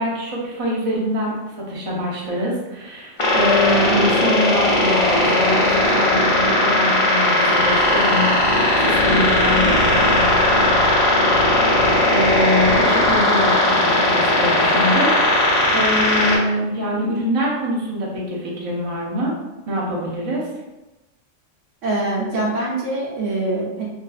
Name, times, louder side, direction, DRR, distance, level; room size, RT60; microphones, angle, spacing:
voice 1, 0.0-10.4 12.1-19.3 19.7-20.5, equal, 35° right, -4 dB, 0.6 m, -24 dB
sound 1, 3.2-16.3, left 1 dB, 40° left, 0.4 m, -17 dB
voice 2, 21.8-23.9, right 2 dB, 75° right, -5 dB, 1.2 m, -23 dB
3.5 x 2.6 x 2.4 m, 1.0 s
omnidirectional pair, 1.3 m